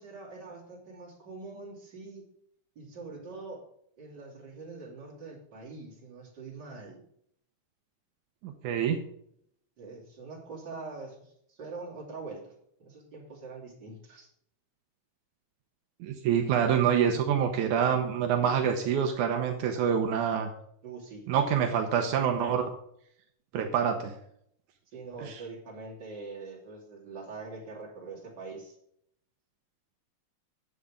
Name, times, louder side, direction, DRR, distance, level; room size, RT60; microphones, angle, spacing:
voice 1, 0.0-2.3 2.8-3.6 4.0-7.0 9.8-12.5 12.8-14.3 20.8-21.3 24.9-28.8, right 3 dB, 35° right, -3 dB, 3.3 m, -43 dB
voice 2, 8.4-9.0 16.0-20.5 21.3-22.7 23.5-24.1 25.2-25.4, right 8 dB, 80° right, 4 dB, 2.3 m, -26 dB
9.2 x 8.3 x 4.9 m, 0.70 s
omnidirectional pair, 3.5 m